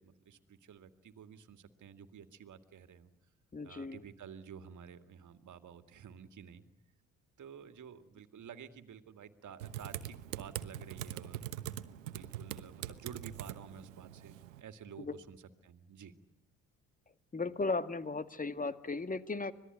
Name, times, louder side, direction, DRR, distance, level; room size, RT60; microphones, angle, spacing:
voice 1, 0.0-3.1 3.6-6.6 7.4-16.1, right 7 dB, 50° right, 10 dB, 2.4 m, -51 dB
voice 2, 3.5-4.0 15.0-15.1 17.3-19.5, left 3 dB, 20° left, 13 dB, 1.9 m, -36 dB
Typing, 9.6-14.6, right 12 dB, 85° right, 1.1 m, -43 dB
26.0 x 20.0 x 9.9 m, 0.79 s
hypercardioid pair, 55°, 38 cm